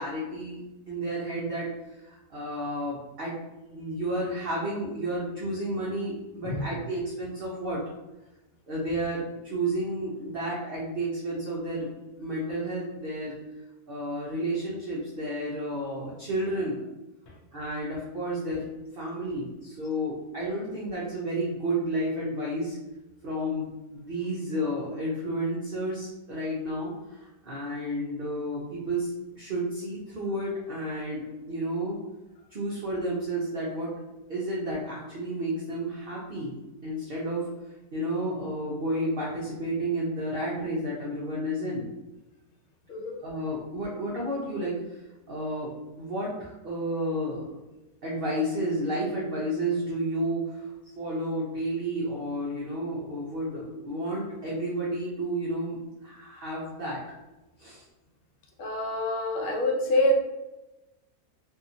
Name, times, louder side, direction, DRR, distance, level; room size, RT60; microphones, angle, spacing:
voice 1, 0.0-3.4 3.7-7.8 8.7-11.9 12.2-13.4 13.9-16.8 17.5-18.7 18.9-22.8 23.2-32.0 32.5-33.9 34.3-36.5 36.8-37.5 37.9-41.8 43.2-45.7 46.0-47.5 48.0-50.7 51.0-57.0 57.6-57.8, right 1 dB, 55° right, -5 dB, 0.6 m, -31 dB
voice 2, 58.6-60.2, left 1 dB, 85° left, 0 dB, 0.5 m, -26 dB
2.7 x 2.7 x 2.5 m, 1.0 s
omnidirectional pair, 1.7 m